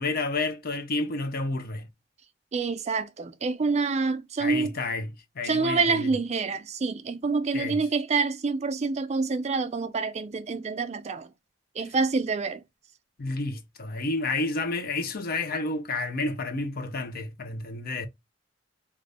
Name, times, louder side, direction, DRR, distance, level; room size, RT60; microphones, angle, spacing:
voice 1, 0.0-1.9 4.4-6.2 7.5-7.8 13.2-18.1, left 3 dB, 50° left, 0.6 m, -30 dB
voice 2, 2.5-4.7 5.4-11.3 11.8-12.6, right 4 dB, 35° right, 0.4 m, -27 dB
2.6 x 2.5 x 3.3 m
head